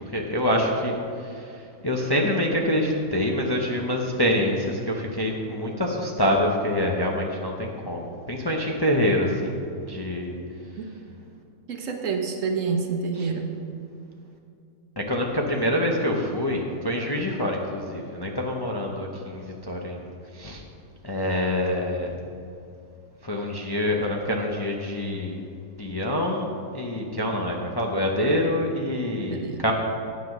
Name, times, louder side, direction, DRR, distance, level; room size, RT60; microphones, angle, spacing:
voice 1, 0.1-9.6 9.9-10.4 15.0-20.6 21.0-22.2 23.2-25.5 25.8-29.7, left 1 dB, 20° left, 0 dB, 0.6 m, -26 dB
voice 2, 11.7-13.5 29.3-29.6, right 5 dB, 65° right, 4 dB, 1.3 m, -28 dB
9.5 x 7.7 x 6.0 m, 2.5 s
omnidirectional pair, 1.5 m